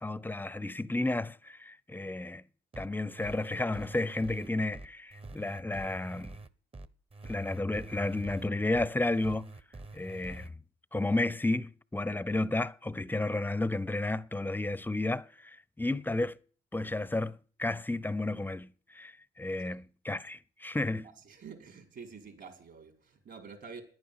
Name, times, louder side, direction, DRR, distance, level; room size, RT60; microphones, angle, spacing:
voice 1, 0.0-2.4 2.8-6.3 7.2-9.5 9.9-10.5 10.9-16.4 16.7-21.1, left 2 dB, 10° left, 0.8 m, -32 dB
sound 1, 2.7-10.5, right 2 dB, 30° right, 1.2 m, -47 dB
voice 2, 21.2-23.8, right 5 dB, 60° right, 5.1 m, -48 dB
10.5 x 9.5 x 8.6 m
supercardioid pair, 65°, 21 cm